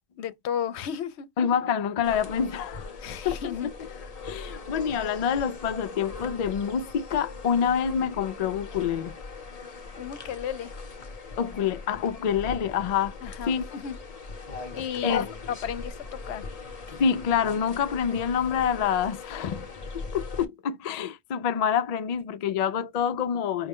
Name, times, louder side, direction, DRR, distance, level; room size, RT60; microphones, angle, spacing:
voice 1, 0.2-1.3 3.0-4.4 10.0-10.7 13.2-14.0 14.7-16.4, left 8 dB, 80° left, 0.8 m, -34 dB
voice 2, 1.4-2.9 3.2-3.4 4.2-9.1 11.4-13.1 13.5-13.6 15.0-15.2 17.0-19.7 19.9-23.7, left 7 dB, 60° left, 0.4 m, -27 dB
sound 1, 2.0-20.4, left 4 dB, 40° left, 0.8 m, -40 dB
5.3 x 2.0 x 3.6 m
omnidirectional pair, 1.1 m